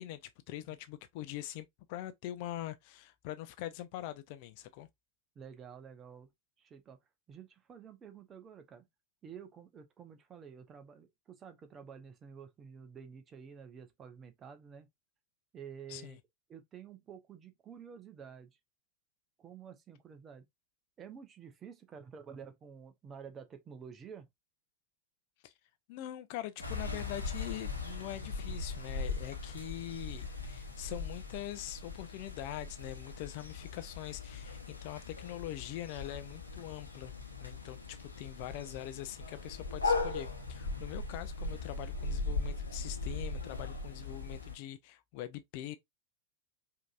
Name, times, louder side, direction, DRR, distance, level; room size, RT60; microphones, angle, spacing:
voice 1, 0.0-4.9 15.9-16.2 25.4-25.5 25.9-37.1 37.4-45.8, left 13 dB, 45° left, 0.6 m, -43 dB
voice 2, 5.4-6.3 6.6-7.0 7.3-8.8 9.2-14.9 15.5-16.2 16.5-18.5 19.4-20.4 21.0-24.3, right 7 dB, 25° right, 0.9 m, -50 dB
sound 1, 26.6-44.5, left 3 dB, 80° left, 0.9 m, -39 dB
5.1 x 2.9 x 2.4 m
figure-of-eight pair, 90°, 0 cm